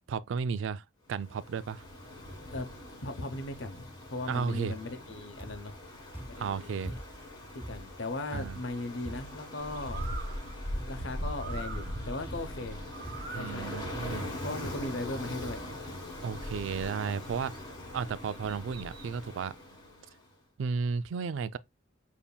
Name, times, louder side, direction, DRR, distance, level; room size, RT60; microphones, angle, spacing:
voice 1, 0.1-0.8 1.1-1.8 4.3-4.8 6.4-6.9 8.3-8.6 13.3-14.3 16.2-17.5 17.9-19.5 20.6-21.6, right 5 dB, 80° right, 0.3 m, -33 dB
Ocean, 1.1-20.3, left 1 dB, 25° left, 1.6 m, -44 dB
voice 2, 3.0-5.8 6.3-6.9 7.5-10.0 10.9-12.8 13.3-13.7 14.4-15.6, left 2 dB, 75° left, 0.8 m, -38 dB
sound 1, 5.4-5.8 6.1-7.3 7.6-9.5 10.0-10.4 10.7-11.2 11.5-11.9 12.3-12.7 13.0-13.5 13.8-14.2 14.6-15.2 15.4-15.8 16.5-16.6 16.8-16.9, right 1 dB, 10° right, 0.5 m, -44 dB
Bird, 9.6-19.2, equal, 50° right, 1.0 m, -41 dB
7.0 x 2.8 x 2.2 m
head